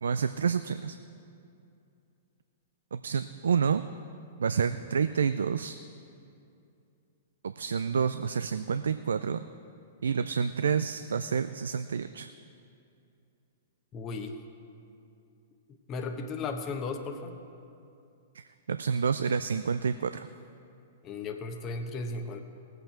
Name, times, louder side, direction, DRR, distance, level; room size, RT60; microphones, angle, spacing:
voice 1, 0.0-1.0 2.9-3.8 4.4-5.8 7.4-9.4 10.0-12.3 18.3-18.4 18.7-20.3, right 6 dB, 75° right, 12 dB, 0.3 m, -28 dB
voice 2, 13.9-14.4 15.9-17.4 21.0-22.4, left 3 dB, 30° left, 5 dB, 1.0 m, -35 dB
18.5 x 7.9 x 4.4 m, 2.6 s
figure-of-eight pair, 110°, 0 cm